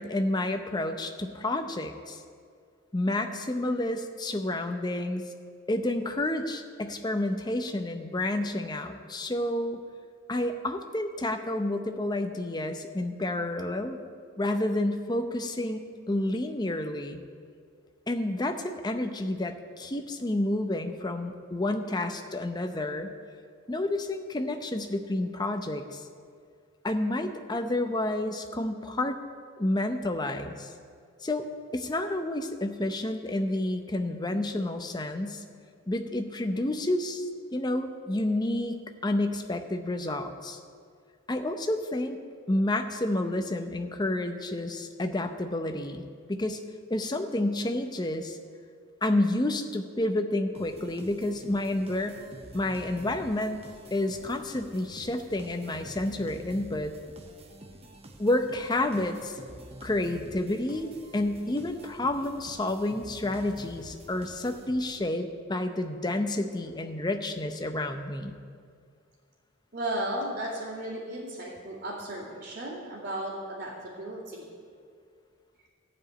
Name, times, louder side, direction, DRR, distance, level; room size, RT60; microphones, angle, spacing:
voice 1, 0.0-2.2 2.9-5.2 5.7-9.8 10.3-14.0 14.4-15.8 16.1-17.2 18.1-23.1 23.7-26.0 26.8-29.2 29.6-30.7 31.2-35.4 35.9-40.6 41.3-42.2 42.5-46.6 46.9-48.4 49.0-52.2 52.5-53.6 53.9-57.0 58.2-59.3 59.8-68.4, left 1 dB, 20° left, 6 dB, 0.6 m, -30 dB
sound 1, 50.5-65.1, right 1 dB, 30° right, 0.9 m, -48 dB
voice 2, 69.7-74.5, right 1 dB, 50° right, -9 dB, 2.4 m, -35 dB
14.0 x 5.0 x 8.9 m, 2.1 s
head